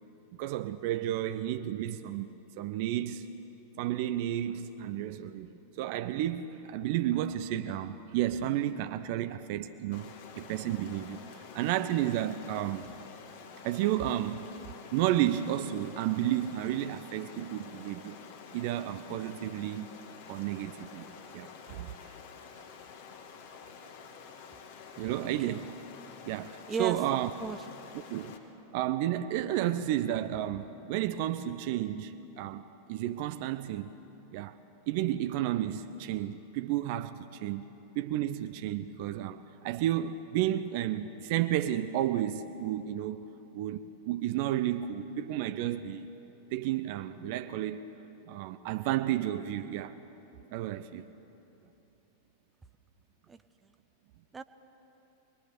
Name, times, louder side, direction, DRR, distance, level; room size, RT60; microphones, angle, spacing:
voice 1, 0.4-2.3 2.6-3.3 3.8-5.5 5.8-11.2 11.5-12.9 13.6-14.5 14.9-18.2 18.5-19.9 20.3-22.1 25.0-25.7 26.3-27.3 28.1-28.4 28.7-32.6 32.9-33.9 34.3-34.6 34.9-37.6 38.0-43.2 43.5-46.1 46.5-47.8 48.3-50.0 50.5-51.0, right 12 dB, 50° right, 0.7 m, -32 dB
Stream, 9.9-28.4, left 6 dB, 50° left, 2.0 m, -49 dB
voice 2, 25.0-25.6 26.7-27.6 53.3-53.7 54.3-54.4, right 4 dB, 15° right, 1.0 m, -38 dB
25.0 x 21.0 x 6.8 m
figure-of-eight pair, 90°, 0 cm